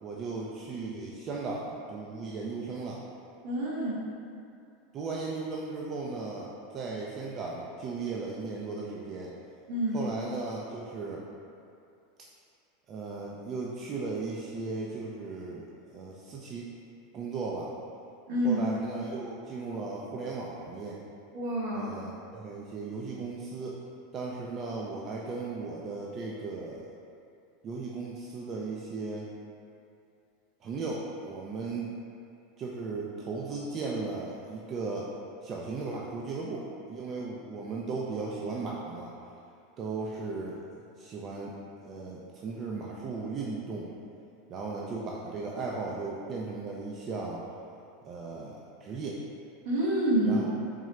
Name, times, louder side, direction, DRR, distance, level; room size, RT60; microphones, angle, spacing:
voice 1, 0.0-3.0 4.9-9.3 9.9-11.2 12.9-16.7 17.1-17.7 18.4-21.0 21.7-23.8 24.1-26.9 27.6-29.3 30.6-31.9 32.6-35.1 35.4-39.1 39.8-40.6 41.0-41.6 41.8-43.9 44.5-47.4 48.0-49.2 50.2-50.5, right 3 dB, 40° right, -3 dB, 0.4 m, -36 dB
voice 2, 3.4-4.0 9.7-10.0 18.3-18.6 21.3-21.9 49.6-50.5, right 1 dB, 70° right, -5 dB, 0.9 m, -27 dB
3.7 x 3.1 x 3.1 m, 2.5 s
hypercardioid pair, 90°, 0 cm